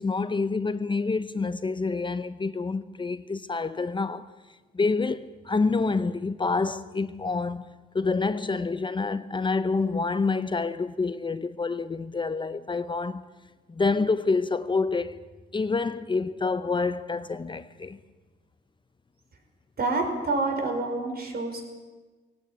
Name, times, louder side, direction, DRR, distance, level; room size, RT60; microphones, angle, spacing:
voice 1, 0.0-4.3 4.7-7.7 7.9-13.3 13.7-15.2 15.5-18.0, left 4 dB, 25° left, 0.8 m, -27 dB
voice 2, 19.8-21.7, right 3 dB, 55° right, 5.1 m, -28 dB
18.5 x 16.5 x 9.9 m
cardioid pair, 100°, 19 cm